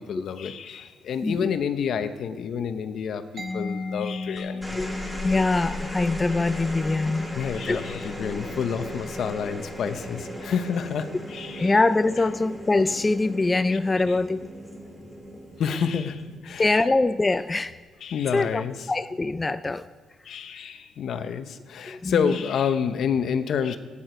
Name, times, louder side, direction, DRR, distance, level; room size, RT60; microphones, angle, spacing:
voice 1, 0.0-4.6 7.4-11.7 13.7-13.8 14.1-14.2 15.6-16.8 18.0-18.8 20.3-23.8, left 7 dB, 65° left, 10 dB, 0.9 m, -29 dB
Mallet percussion, 3.4-10.9, left 3 dB, 50° right, 2.1 m, -37 dB
sound 1, 4.4-17.0 18.2-18.6, equal, ahead, 3.0 m, -37 dB
voice 2, 5.2-7.4 7.7-7.8 11.5-14.5 16.6-17.7 18.3-18.6 18.9-19.8 21.9-22.4, left 3 dB, 20° left, 12 dB, 0.4 m, -23 dB
16.0 x 9.9 x 5.1 m, 1.5 s
cardioid pair, 90°, 0 cm